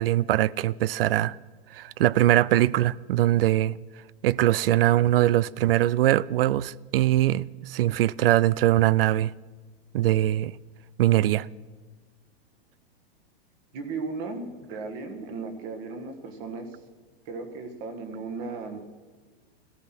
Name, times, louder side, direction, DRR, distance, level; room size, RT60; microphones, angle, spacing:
voice 1, 0.0-1.4 1.7-3.8 4.2-9.3 9.9-10.5 11.0-11.5, right 14 dB, 60° right, 0.5 m, -22 dB
voice 2, 13.7-16.7 17.2-18.8, right 4 dB, 30° right, 1.7 m, -36 dB
17.0 x 14.0 x 6.1 m
supercardioid pair, 175°, 32 cm